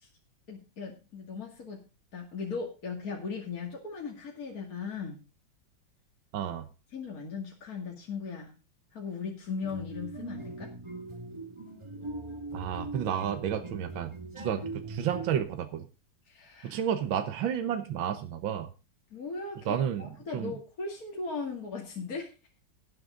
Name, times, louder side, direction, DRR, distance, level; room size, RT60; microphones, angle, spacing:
voice 1, 0.5-5.2 6.9-8.5 8.9-10.7 16.3-16.8 19.1-22.4, left 5 dB, 45° left, 0 dB, 2.7 m, -38 dB
voice 2, 6.3-6.7 12.5-15.9 16.6-18.7 19.7-20.5, right 9 dB, 75° right, 8 dB, 1.8 m, -31 dB
sound 1, 9.6-15.4, right 2 dB, 15° right, 1.8 m, -40 dB
18.0 x 8.0 x 3.8 m, 0.31 s
omnidirectional pair, 2.2 m